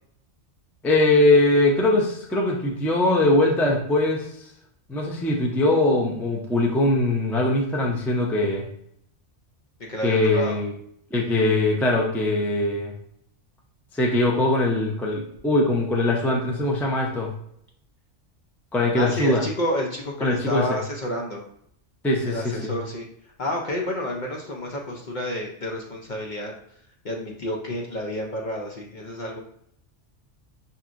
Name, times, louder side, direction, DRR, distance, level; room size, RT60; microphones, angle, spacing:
voice 1, 0.8-4.3 4.9-8.7 10.0-10.7 11.1-12.9 13.9-17.3 18.7-19.4 20.2-20.7 22.0-22.7, left 2 dB, 5° left, -1 dB, 0.3 m, -21 dB
voice 2, 9.9-10.6 19.0-21.4 22.3-23.1 23.4-26.5 27.0-29.4, left 1 dB, 50° left, -1 dB, 0.6 m, -30 dB
5.8 x 2.7 x 2.5 m, 0.70 s
omnidirectional pair, 1.3 m